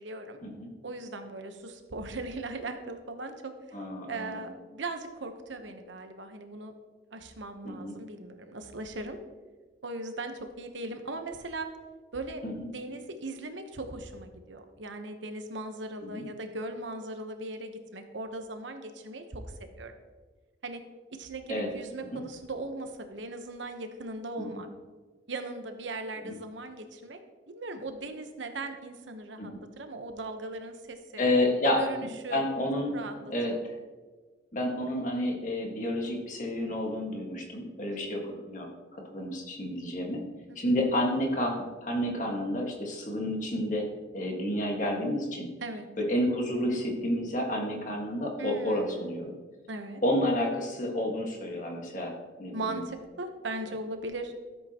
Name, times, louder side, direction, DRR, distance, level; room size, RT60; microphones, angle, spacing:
voice 1, 0.0-0.4 0.8-3.5 4.1-6.7 7.1-9.2 9.8-11.7 12.1-12.4 12.7-19.4 19.8-19.9 20.6-20.8 21.1-24.7 25.3-27.2 27.5-31.3 31.8-32.4 32.9-33.1 37.9-38.2 40.5-40.7 45.6-45.9 48.4-49.1 49.7-50.0 52.5-54.3, right 2 dB, 80° right, 6 dB, 1.0 m, -39 dB
voice 2, 3.7-4.4 7.6-8.0 12.4-12.7 16.0-16.2 21.5-21.7 22.1-22.2 24.4-24.5 26.2-26.3 29.4-29.6 31.2-31.8 32.3-33.5 34.5-40.2 40.5-43.8 44.1-45.5 46.0-49.3 50.0-52.8, left 1 dB, 40° left, 0 dB, 1.6 m, -30 dB
13.0 x 7.8 x 3.0 m, 1.3 s
head